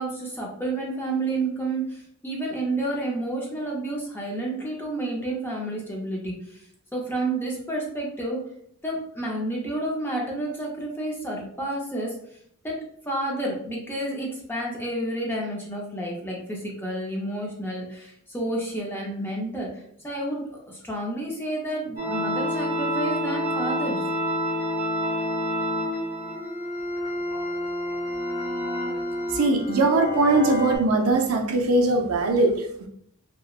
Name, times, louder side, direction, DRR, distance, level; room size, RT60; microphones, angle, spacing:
voice 1, 0.0-6.6 6.9-8.4 8.8-12.2 12.6-12.8 13.1-24.0, right 2 dB, 10° left, -2 dB, 0.5 m, -30 dB
sound 1, 22.0-30.8, equal, 40° right, 0.9 m, -28 dB
voice 2, 29.3-32.9, right 2 dB, 75° right, 4 dB, 0.4 m, -21 dB
2.9 x 2.0 x 2.3 m, 0.68 s
head